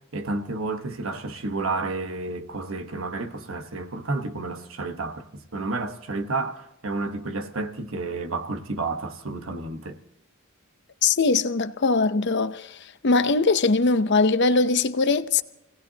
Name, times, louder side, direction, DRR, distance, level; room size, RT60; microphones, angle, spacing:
voice 1, 0.1-10.0, right 3 dB, 70° right, 1.3 m, -31 dB
voice 2, 11.0-12.8 13.0-15.4, left 3 dB, 55° left, 0.7 m, -21 dB
28.0 x 18.0 x 2.9 m
head